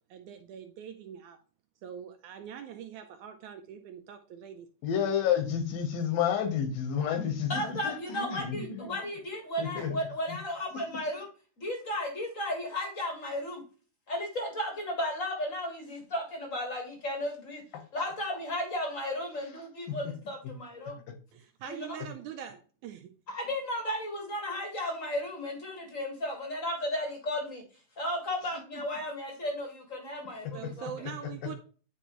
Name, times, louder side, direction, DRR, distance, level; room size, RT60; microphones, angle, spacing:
voice 1, 0.1-1.4 1.8-4.7 21.3-23.2 30.5-31.6, right 8 dB, 75° right, 6 dB, 1.8 m, -43 dB
voice 2, 4.8-8.9 9.6-10.0 10.3-10.4 10.9-11.0 17.7-17.8 19.9-20.0, left 8 dB, 80° left, 7 dB, 2.9 m, -30 dB
voice 3, 7.5-11.3 11.6-13.6 14.1-17.6 17.9-21.0 21.7-22.0 23.3-27.6 28.0-30.9, left 1 dB, 45° left, 2 dB, 1.0 m, -34 dB
9.8 x 4.5 x 3.0 m, 0.38 s
omnidirectional pair, 3.9 m